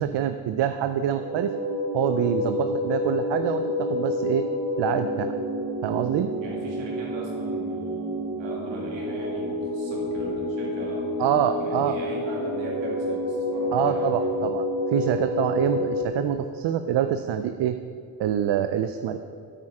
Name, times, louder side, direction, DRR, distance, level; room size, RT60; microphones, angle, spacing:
voice 1, 0.0-1.5 1.9-4.4 4.8-5.3 5.8-6.3 11.2-12.0 13.7-14.6 14.9-17.8 18.2-19.2, right 10 dB, 70° right, 9 dB, 0.6 m, -25 dB
sound 1, 1.0-16.0, left 1 dB, 40° right, 2.2 m, -29 dB
voice 2, 6.4-14.6, right 1 dB, 85° right, -2 dB, 2.7 m, -38 dB
9.0 x 8.6 x 4.9 m, 2.5 s
cardioid pair, 85°, 44 cm